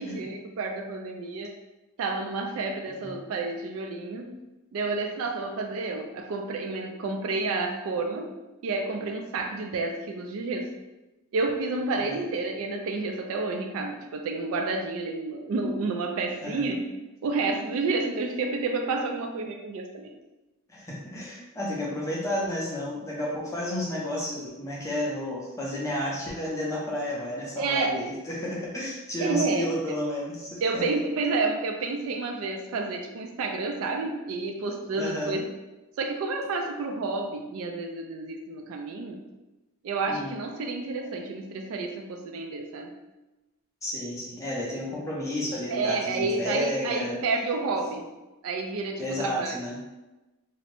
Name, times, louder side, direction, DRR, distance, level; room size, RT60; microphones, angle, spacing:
voice 1, 0.0-1.5 2.0-4.3 4.7-8.3 8.6-10.7 11.3-16.8 17.2-20.1 27.6-27.9 29.2-29.7 30.6-35.5 36.0-39.2 39.8-42.9 45.7-48.1 48.4-49.6, right 3 dB, 70° right, 3 dB, 0.3 m, -30 dB
voice 2, 11.9-12.3 16.4-16.7 20.7-30.8 34.9-35.4 40.1-40.4 43.8-47.2 49.0-49.8, left 1 dB, 15° left, -5 dB, 0.5 m, -32 dB
2.6 x 2.0 x 3.0 m, 1.1 s
head